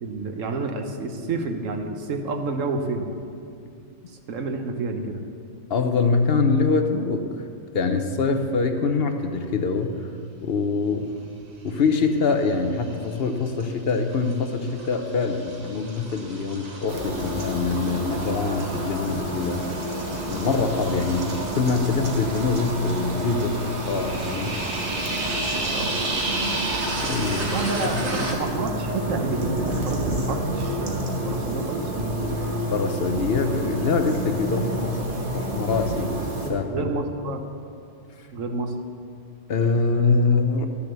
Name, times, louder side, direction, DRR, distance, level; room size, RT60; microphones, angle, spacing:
voice 1, 0.0-3.1 4.1-5.2 25.5-26.0 27.4-31.9 36.7-37.4 38.3-38.7, right 3 dB, 80° right, 5 dB, 1.3 m, -29 dB
voice 2, 5.7-7.5 7.7-10.1 10.4-11.1 11.6-19.6 20.3-24.6 27.0-27.5 27.8-27.9 32.7-35.0 35.3-36.2 36.5-36.9 38.2-38.3 39.5-40.8, left 4 dB, 55° left, 6 dB, 0.9 m, -24 dB
sound 1, 12.0-12.5 12.8-28.3, right 2 dB, 60° right, 1.6 m, -33 dB
sound 2, 16.9-36.5, right 1 dB, 45° right, 1.5 m, -29 dB
12.0 x 7.0 x 6.8 m, 2.4 s
omnidirectional pair, 1.3 m